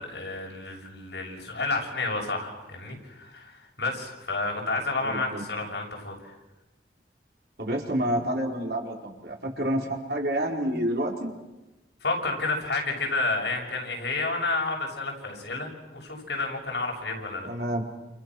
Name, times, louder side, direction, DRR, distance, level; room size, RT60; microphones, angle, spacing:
voice 1, 0.0-6.3 12.0-17.5, left 3 dB, 80° left, 0 dB, 7.0 m, -30 dB
voice 2, 5.0-5.4 7.6-11.3 17.4-17.8, right 1 dB, 65° right, 0 dB, 4.8 m, -28 dB
29.5 x 29.0 x 6.4 m, 1.0 s
head